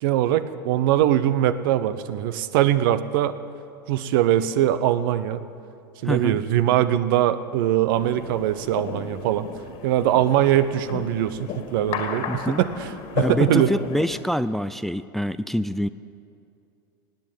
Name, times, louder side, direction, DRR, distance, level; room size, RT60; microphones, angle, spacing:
voice 1, 0.0-3.4 3.9-5.4 6.0-9.5 9.8-12.9 13.2-13.7, right 12 dB, 65° right, 13 dB, 0.9 m, -22 dB
voice 2, 6.0-6.4 12.3-12.6 13.2-15.9, equal, ahead, 14 dB, 0.4 m, -25 dB
sound 1, 7.9-14.2, left 7 dB, 50° left, 2.2 m, -34 dB
17.5 x 8.3 x 9.3 m, 2.5 s
hypercardioid pair, 95°, 12 cm